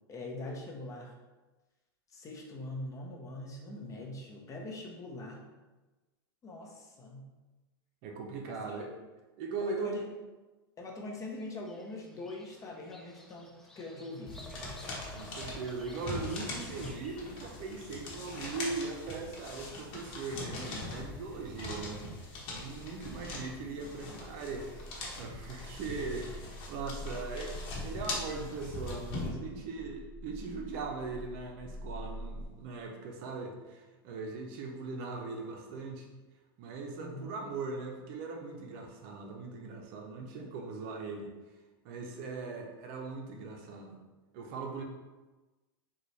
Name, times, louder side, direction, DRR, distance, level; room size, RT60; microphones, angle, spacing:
voice 1, 0.1-1.2 2.1-5.5 6.4-7.2 8.5-8.8 9.6-10.0 10.8-14.4 37.0-37.4, left 2 dB, 25° left, -1 dB, 0.7 m, -43 dB
voice 2, 8.0-9.0 9.4-10.0 15.1-22.0 22.5-24.9 25.2-36.1 36.6-41.3 41.8-44.0 44.3-44.8, right 4 dB, 55° right, 2 dB, 0.6 m, -40 dB
Bird vocalization bird call bird song, 11.4-18.0, left 1 dB, 5° left, 0.3 m, -53 dB
sound 1, 14.3-29.3, left 2 dB, 45° left, 1.0 m, -42 dB
sound 2, 23.6-32.5, equal, 20° right, 0.9 m, -47 dB
4.0 x 2.3 x 3.2 m, 1.2 s
hypercardioid pair, 120°, 13 cm